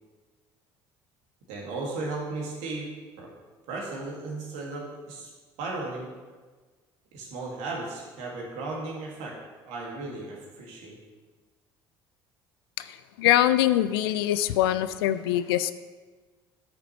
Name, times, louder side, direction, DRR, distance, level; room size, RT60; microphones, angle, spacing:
voice 1, 1.5-2.9 3.2-3.3 3.7-5.3 5.6-6.1 7.1-9.4 9.6-11.0, right 3 dB, 70° right, -2 dB, 2.1 m, -35 dB
voice 2, 12.8-15.7, left 13 dB, 80° left, 13 dB, 0.4 m, -23 dB
9.5 x 6.7 x 3.2 m, 1.4 s
hypercardioid pair, 60°, 12 cm